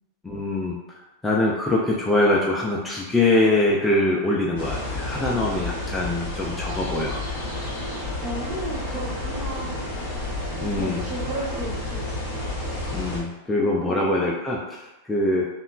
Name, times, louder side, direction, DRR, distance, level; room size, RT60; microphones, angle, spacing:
voice 1, 0.2-1.0 1.2-7.2 10.6-11.0 12.9-15.5, left 2 dB, 10° left, -3 dB, 0.3 m, -23 dB
sound 1, 4.6-13.2, left 2 dB, 50° left, 0.7 m, -30 dB
voice 2, 8.2-9.8 10.6-12.0 13.6-14.0, right 2 dB, 40° right, -6 dB, 1.0 m, -34 dB
2.8 x 2.0 x 2.3 m, 0.98 s
figure-of-eight pair, 90°, 0 cm